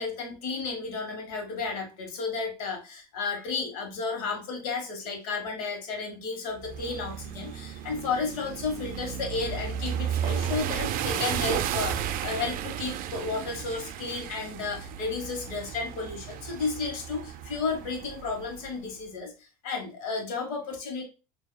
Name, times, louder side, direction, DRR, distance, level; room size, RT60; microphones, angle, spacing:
voice 1, 0.0-21.0, left 4 dB, 90° left, 4 dB, 1.4 m, -33 dB
sound 1, 6.6-18.7, right 9 dB, 50° right, 0.5 m, -34 dB
6.5 x 2.7 x 2.2 m, 0.30 s
supercardioid pair, 110°, 18 cm